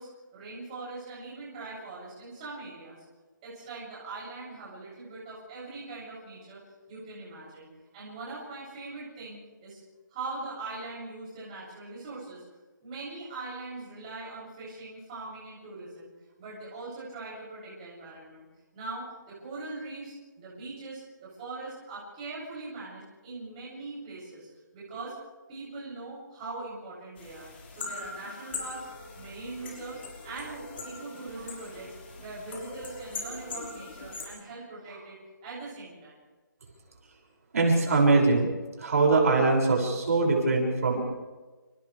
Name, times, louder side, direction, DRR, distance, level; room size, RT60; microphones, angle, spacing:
voice 1, 0.0-3.0 3.4-6.6 6.9-9.8 10.1-12.4 12.8-16.1 16.4-18.4 18.7-24.5 24.7-25.1 25.5-28.9 29.1-36.1 40.9-41.1, right 3 dB, 20° right, -7 dB, 7.9 m, -41 dB
sound 1, 27.2-34.2, left 3 dB, 30° left, 5.2 m, -41 dB
voice 2, 37.5-38.5 38.8-41.1, right 3 dB, 45° right, 0 dB, 6.8 m, -22 dB
29.5 x 28.5 x 3.5 m, 1.3 s
hypercardioid pair, 175°, 11 cm